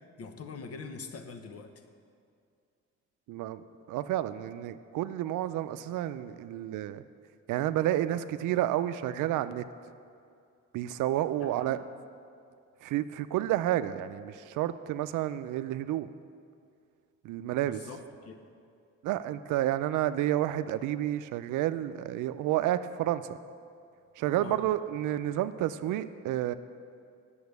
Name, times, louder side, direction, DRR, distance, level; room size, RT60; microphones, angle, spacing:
voice 1, 0.2-1.7 11.4-11.8 17.6-18.4 24.4-24.6, left 4 dB, 50° left, 6 dB, 1.1 m, -43 dB
voice 2, 3.3-7.0 7.5-9.6 10.7-11.8 12.8-16.1 17.2-17.8 19.0-23.4 24.2-26.5, right 13 dB, 85° right, 13 dB, 0.5 m, -30 dB
8.7 x 7.1 x 8.1 m, 2.4 s
cardioid pair, 90°, 30 cm